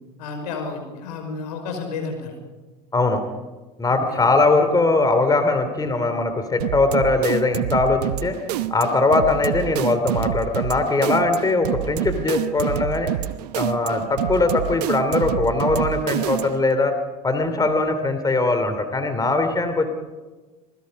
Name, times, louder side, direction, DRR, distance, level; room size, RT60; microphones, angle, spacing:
voice 1, 0.2-2.4 3.9-4.2 14.0-14.1, left 4 dB, 80° left, 5 dB, 5.6 m, -32 dB
voice 2, 3.8-8.4 8.7-13.1 13.5-16.9 17.2-19.9, left 3 dB, 20° left, 8 dB, 3.1 m, -20 dB
sound 1, 6.6-16.7, right 13 dB, 80° right, 0.9 m, -27 dB
25.5 x 20.0 x 5.3 m, 1.2 s
hypercardioid pair, 80°, 20 cm